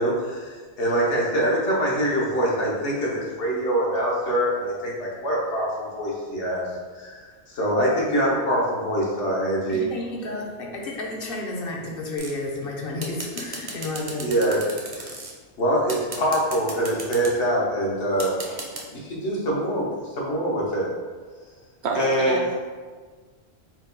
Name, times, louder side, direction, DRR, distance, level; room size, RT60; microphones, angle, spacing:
voice 1, 0.0-6.7 7.0-9.9 14.2-14.6 15.0-15.2 15.6-20.9 21.9-22.4, right 1 dB, 80° left, -5 dB, 1.3 m, -24 dB
voice 2, 9.7-14.3, left 2 dB, 60° left, -1 dB, 0.8 m, -31 dB
sound 1, 12.2-12.5 13.0-15.3 15.9-17.3 18.2-18.8, right 3 dB, 45° right, 0.5 m, -35 dB
voice 3, 21.8-22.5, right 4 dB, 70° right, 1 dB, 0.9 m, -28 dB
4.5 x 2.2 x 3.8 m, 1.5 s
omnidirectional pair, 1.2 m